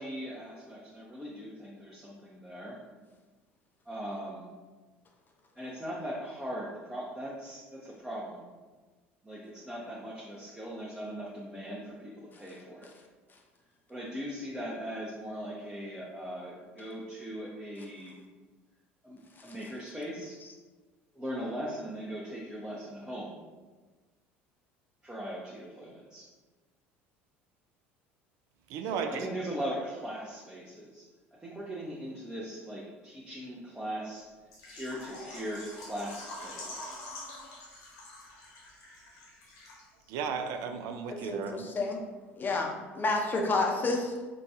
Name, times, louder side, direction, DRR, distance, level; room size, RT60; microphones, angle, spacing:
voice 1, 0.0-2.8 3.9-4.5 5.6-8.4 9.2-12.9 13.9-18.2 19.0-20.4 21.1-23.4 25.0-26.3 28.8-31.1 31.3-34.3 34.7-36.9, equal, 10° right, -5 dB, 0.7 m, -39 dB
voice 2, 28.7-29.3 40.1-41.7, right 6 dB, 60° right, 6 dB, 0.4 m, -34 dB
Water / Liquid, 34.5-40.1 40.4-40.5 40.9-41.0, left 1 dB, 60° left, 1.0 m, -45 dB
voice 3, 41.2-42.0 42.4-42.7 42.9-44.1, left 3 dB, 30° left, 1 dB, 0.6 m, -29 dB
4.0 x 2.3 x 2.6 m, 1.3 s
hypercardioid pair, 70°, 6 cm